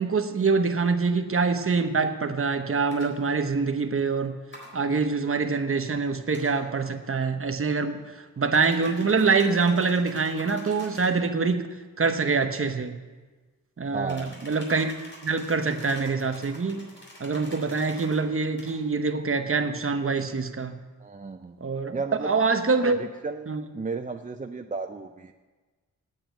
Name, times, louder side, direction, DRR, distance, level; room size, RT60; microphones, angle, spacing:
voice 1, 0.0-4.3 4.7-8.0 8.4-11.7 12.0-13.0 13.8-14.9 15.2-16.8 17.2-20.7 21.6-22.0 22.2-23.1 23.5-23.6, right 4 dB, 40° right, 7 dB, 1.0 m, -25 dB
sound 1, 2.9-3.1 4.5-4.7 6.3-6.5 8.5-11.2 14.1-18.2 18.6-18.8, equal, 35° left, 4.1 m, -47 dB
voice 2, 13.9-14.3 21.0-21.6 21.9-22.4 22.9-23.5 23.7-25.3, right 4 dB, 25° right, 6 dB, 0.5 m, -34 dB
9.0 x 7.8 x 9.2 m, 1.3 s
wide cardioid pair, 90°, 33 cm